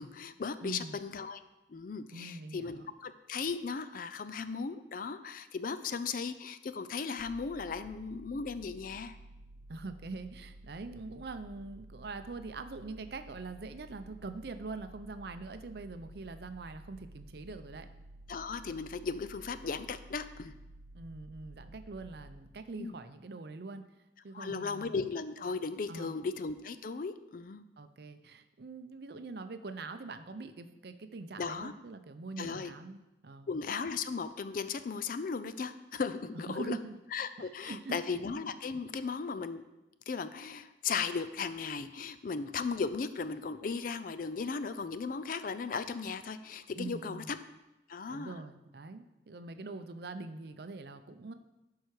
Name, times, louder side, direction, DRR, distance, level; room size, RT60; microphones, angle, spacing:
voice 1, 0.0-1.4 1.7-9.2 18.3-20.5 22.8-23.0 24.3-27.6 31.4-31.7 32.4-32.7 33.5-36.8 37.1-39.6 40.1-47.4 47.9-48.3, left 5 dB, 50° left, 12 dB, 0.4 m, -36 dB
voice 2, 0.6-1.0 2.1-2.9 9.7-17.9 20.9-23.8 24.2-25.0 25.9-26.2 27.8-33.5 36.5-36.9 37.4-38.0 46.7-47.3 48.1-51.3, right 3 dB, 60° right, 9 dB, 0.6 m, -43 dB
sound 1, 7.2-23.0, right 1 dB, 85° left, 2.7 m, -53 dB
11.0 x 4.7 x 4.8 m, 0.98 s
head